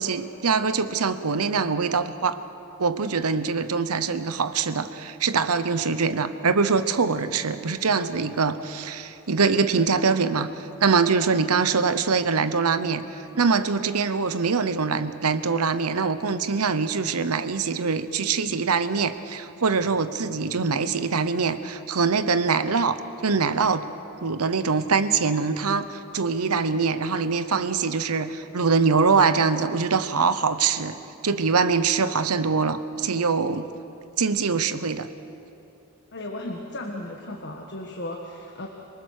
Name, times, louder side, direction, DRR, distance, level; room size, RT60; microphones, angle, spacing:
voice 1, 0.0-2.4 2.8-13.0 13.3-23.8 24.2-31.0 31.2-33.6 34.2-35.1, right 5 dB, 85° right, 11 dB, 0.9 m, -23 dB
voice 2, 36.1-38.7, left 1 dB, 50° left, 1 dB, 1.6 m, -35 dB
27.0 x 19.5 x 6.5 m, 2.9 s
head